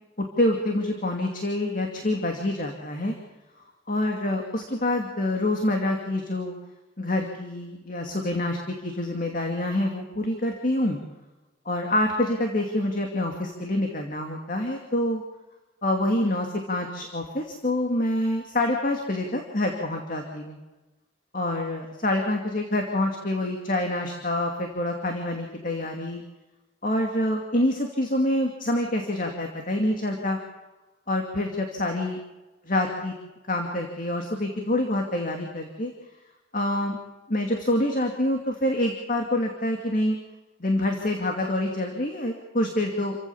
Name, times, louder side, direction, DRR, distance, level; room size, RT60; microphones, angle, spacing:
voice 1, 0.4-3.2 3.9-6.5 7.0-11.0 11.7-15.2 15.8-20.6 21.3-26.2 26.8-30.4 31.1-32.2 32.7-33.1 33.5-35.9 36.5-37.0 37.3-40.2 40.6-43.2, left 1 dB, 45° left, 2 dB, 2.5 m, -26 dB
28.5 x 15.5 x 7.1 m, 1.1 s
head